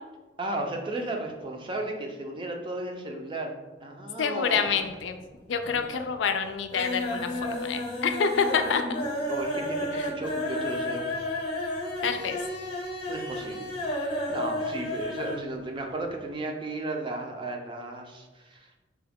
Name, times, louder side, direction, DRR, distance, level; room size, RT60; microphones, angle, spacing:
voice 1, 0.4-3.5 3.8-4.8 9.3-11.1 13.1-18.7, right 2 dB, 30° right, 2 dB, 0.5 m, -34 dB
voice 2, 4.2-5.2 5.5-8.8 9.9-10.1 12.0-12.4, left 6 dB, 85° left, 7 dB, 0.4 m, -27 dB
sound 1, 4.7-5.3 5.6-6.1 6.4-15.5 15.7-15.8 16.1-16.2, left 1 dB, 30° left, 0.7 m, -32 dB
4.6 x 2.2 x 3.4 m, 1.2 s
head